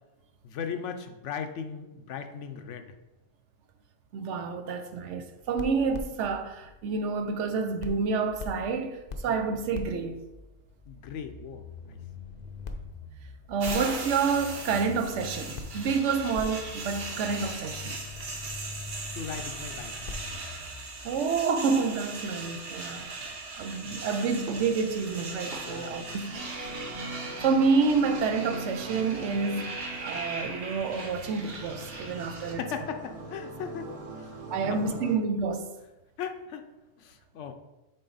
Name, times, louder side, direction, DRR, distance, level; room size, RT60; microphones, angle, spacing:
voice 1, 0.4-2.9 9.3-9.4 10.8-12.0 19.1-19.9 25.6-26.4 29.6-29.7 32.5-34.3 34.6-35.0 36.2-36.7 37.0-37.5, left 7 dB, 85° left, 1.0 m, -38 dB
voice 2, 4.1-10.2 13.5-18.0 21.0-23.1 23.6-26.4 27.4-32.6 34.5-35.7, right 5 dB, 90° right, 1.0 m, -28 dB
sound 1, 5.4-7.5 7.8-21.3, left 3 dB, 50° left, 0.6 m, -43 dB
sound 2, 13.6-32.5, right 3 dB, 60° right, 1.1 m, -39 dB
sound 3, 26.3-35.2, right 2 dB, 35° right, 0.8 m, -41 dB
6.5 x 4.3 x 4.0 m
omnidirectional pair, 1.2 m